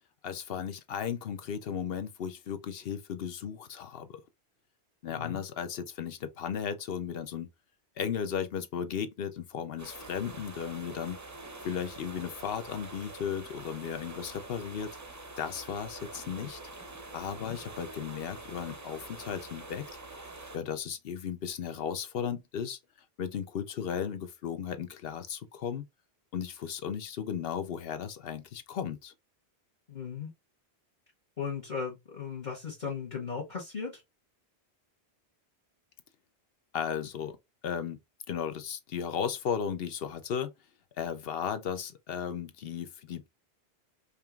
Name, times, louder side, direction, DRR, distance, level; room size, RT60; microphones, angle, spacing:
voice 1, 0.2-4.2 5.0-7.5 8.0-11.2 11.6-15.0 15.4-16.6 17.1-19.9 20.5-22.8 23.2-25.9 26.3-29.1 36.7-37.4 37.6-38.0 38.3-40.5 41.0-43.3, left 7 dB, 65° left, 0.9 m, -35 dB
voice 2, 5.1-5.4 17.4-17.6 29.9-30.3 31.4-34.0, left 6 dB, 45° left, 1.3 m, -37 dB
sound 1, 9.8-20.6, right 2 dB, 20° right, 0.5 m, -46 dB
5.1 x 2.9 x 2.4 m
omnidirectional pair, 1.1 m